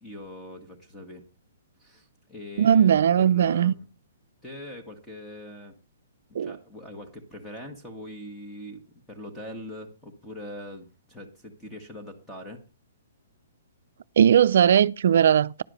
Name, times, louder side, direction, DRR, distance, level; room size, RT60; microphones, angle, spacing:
voice 1, 0.0-1.3 1.8-3.8 4.4-5.7 6.3-8.8 9.1-12.6, left 1 dB, 10° left, 1.4 m, -42 dB
voice 2, 2.6-3.7 6.4-6.5 14.2-15.6, right 9 dB, 65° right, 0.4 m, -19 dB
10.5 x 4.9 x 6.5 m
hypercardioid pair, 150°, 0 cm